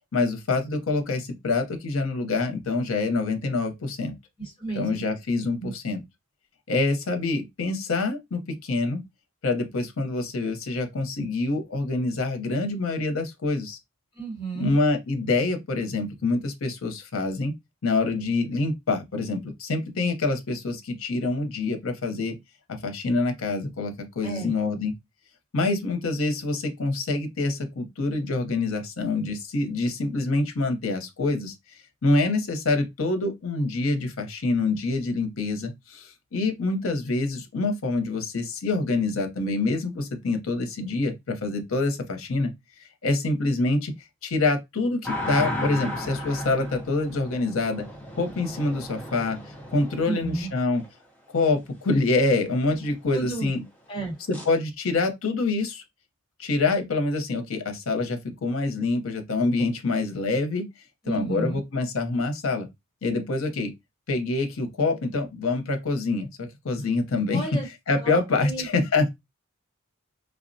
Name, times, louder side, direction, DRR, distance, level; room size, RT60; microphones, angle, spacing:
voice 1, 0.1-4.1 4.7-6.0 6.7-9.0 9.4-13.8 14.6-17.5 17.8-22.4 22.8-24.9 25.5-31.5 32.0-42.5 43.0-43.9 44.2-47.8 48.2-49.4 49.7-50.8 51.3-53.6 54.3-55.8 56.4-60.6 61.1-62.7 63.0-63.7 64.1-67.4 67.9-69.1, left 3 dB, 75° left, 0.6 m, -26 dB
voice 2, 4.4-5.1 5.6-5.7 14.1-14.8 24.2-24.5 50.1-50.5 53.1-53.5 53.9-54.1 61.0-61.6 67.3-67.7 68.0-68.2 68.4-68.7, right 3 dB, 25° left, 1.0 m, -32 dB
sound 1, 45.0-50.9 54.3-54.5, left 1 dB, 5° left, 0.4 m, -34 dB
3.3 x 2.0 x 2.6 m
head